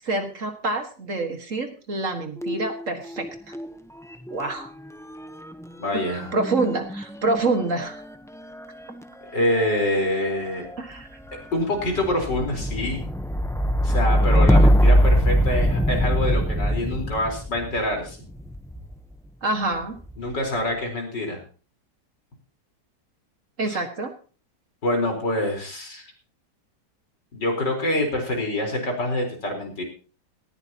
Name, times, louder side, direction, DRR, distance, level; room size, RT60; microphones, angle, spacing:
voice 1, 0.0-3.6 4.3-4.7 6.1-8.0 10.8-11.1 19.4-20.0 23.6-24.1, right 2 dB, 45° right, 6 dB, 2.0 m, -27 dB
sound 1, 2.4-3.7 4.0-19.0 19.8-20.4, equal, 5° left, 0.3 m, -23 dB
voice 2, 5.8-6.3 9.3-10.6 11.5-13.0 13.8-18.2 20.2-21.4 23.6-23.8 24.8-26.0 27.3-29.8, left 1 dB, 75° left, 2 dB, 4.9 m, -26 dB
18.5 x 15.0 x 2.9 m, 0.38 s
omnidirectional pair, 1.9 m